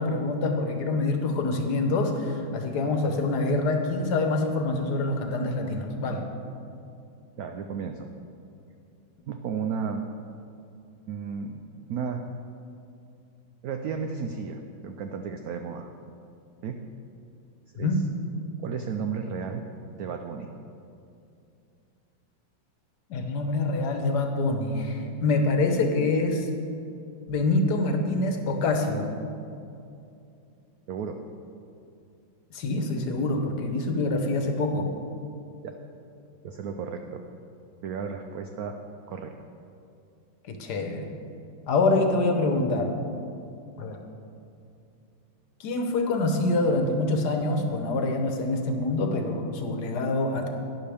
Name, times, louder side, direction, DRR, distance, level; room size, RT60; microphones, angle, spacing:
voice 1, 0.0-6.3 17.8-18.0 23.1-26.5 27.3-29.1 32.5-34.9 40.4-41.1 41.7-42.9 43.8-44.0 45.6-50.5, left 2 dB, 60° left, 4 dB, 1.4 m, -26 dB
voice 2, 7.4-8.1 9.3-10.0 11.1-11.6 11.9-12.3 13.6-15.9 16.6-16.8 17.8-17.9 18.6-19.7 20.0-20.5 30.9-31.2 35.6-35.8 36.4-37.2 37.8-38.8 39.1-39.3, right 6 dB, 80° right, 5 dB, 0.8 m, -33 dB
12.0 x 10.5 x 3.5 m, 2.6 s
omnidirectional pair, 2.2 m